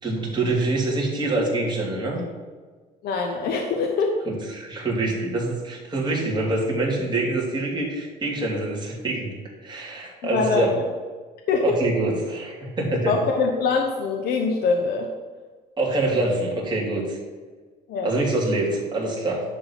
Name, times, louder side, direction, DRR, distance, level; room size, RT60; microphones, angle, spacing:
voice 1, 0.0-2.2 4.3-9.3 9.6-10.7 11.6-13.1 15.8-17.2 18.0-19.4, right 2 dB, 25° right, -3 dB, 3.1 m, -25 dB
voice 2, 3.0-4.1 10.3-10.8 11.5-11.6 13.1-15.1 17.9-18.1, left 4 dB, 70° left, 2 dB, 1.1 m, -23 dB
10.0 x 3.9 x 7.3 m, 1.4 s
cardioid pair, 110°, 17 cm